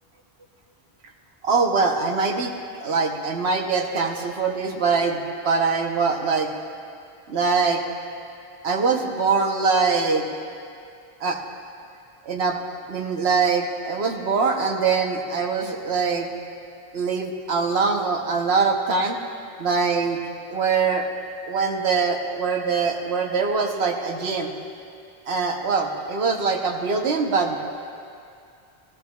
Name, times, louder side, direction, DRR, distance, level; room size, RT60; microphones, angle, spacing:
voice 1, 1.4-6.5 7.3-7.8 8.6-10.3 11.2-11.4 12.2-12.6 12.9-16.3 16.9-19.2 19.6-20.2 20.5-21.1 21.5-24.5 25.3-27.6, right 4 dB, 90° right, 2 dB, 1.2 m, -23 dB
15.5 x 15.0 x 2.3 m, 2.4 s
omnidirectional pair, 1.0 m